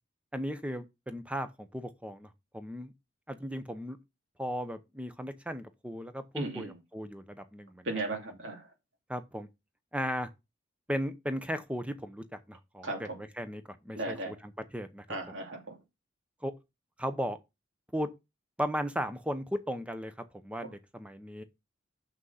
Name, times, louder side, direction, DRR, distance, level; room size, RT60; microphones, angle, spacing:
voice 1, 0.3-2.9 3.3-4.0 4.4-8.0 9.1-9.5 9.9-10.3 10.9-15.0 16.4-16.5 17.0-17.4 17.9-18.1 18.6-20.1 20.4-21.4, equal, 5° right, 0.8 m, -36 dB
voice 2, 6.4-6.8 7.8-8.7 12.8-13.2 14.0-14.3 15.1-15.8 20.6-20.7, right 2 dB, 70° right, 2.5 m, -36 dB
6.4 x 6.1 x 5.6 m
head